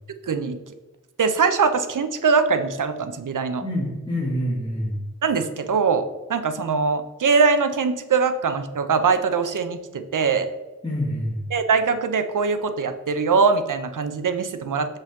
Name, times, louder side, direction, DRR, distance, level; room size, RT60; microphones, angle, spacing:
voice 1, 0.3-0.6 1.2-3.6 5.2-10.5 11.5-15.0, right 5 dB, 90° right, 9 dB, 0.7 m, -22 dB
voice 2, 3.6-5.0 10.8-11.5, equal, 15° left, -7 dB, 2.1 m, -26 dB
7.0 x 5.4 x 3.6 m, 1.1 s
wide cardioid pair, 70°, 30 cm